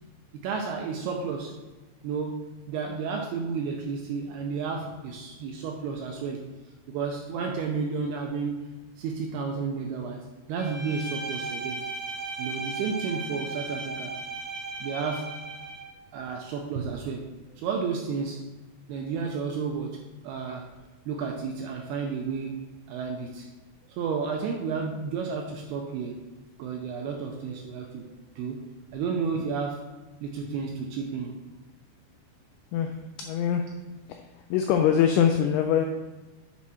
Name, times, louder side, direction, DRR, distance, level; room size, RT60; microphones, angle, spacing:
voice 1, 0.3-1.5 2.0-6.4 6.9-8.6 9.0-11.8 12.4-14.1 14.8-15.3 16.1-17.2 17.5-18.4 18.9-20.0 20.2-20.7 21.1-22.5 22.9-23.5 23.9-26.2 26.6-28.6 28.9-29.8 30.2-31.3, right 5 dB, 85° right, 2 dB, 2.3 m, -32 dB
Bowed string instrument, 10.6-15.9, right 2 dB, 65° right, 0.8 m, -36 dB
voice 2, 32.7-33.7 34.1-35.8, left 8 dB, 85° left, 4 dB, 2.2 m, -24 dB
7.4 x 4.6 x 4.2 m, 1.1 s
omnidirectional pair, 5.1 m